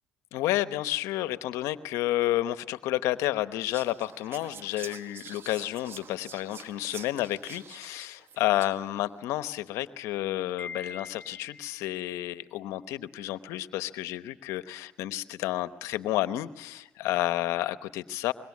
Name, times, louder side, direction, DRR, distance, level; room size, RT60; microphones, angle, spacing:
voice 1, 0.3-18.3, left 15 dB, 85° left, 13 dB, 1.0 m, -30 dB
Whispering, 3.7-9.0, right 6 dB, 55° right, 1.3 m, -47 dB
Wind chime, 10.6-12.0, left 5 dB, 35° left, 1.7 m, -43 dB
25.5 x 22.5 x 9.6 m, 0.94 s
supercardioid pair, 60°, 5 cm